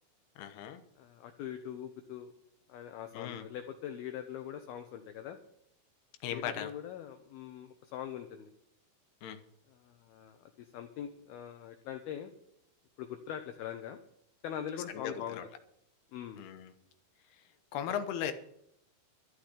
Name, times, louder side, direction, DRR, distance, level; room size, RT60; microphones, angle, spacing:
voice 1, 0.4-0.8 3.1-3.5 6.2-6.7 9.2-9.4 14.9-15.4 16.4-16.7 17.7-18.3, left 9 dB, 70° left, 8 dB, 2.6 m, -37 dB
voice 2, 1.0-2.3 2.7-5.4 6.3-8.5 9.7-12.3 13.0-14.0 14.4-15.4 16.1-16.4, left 10 dB, 90° left, 6 dB, 2.1 m, -42 dB
13.0 x 6.4 x 9.9 m, 0.75 s
omnidirectional pair, 5.6 m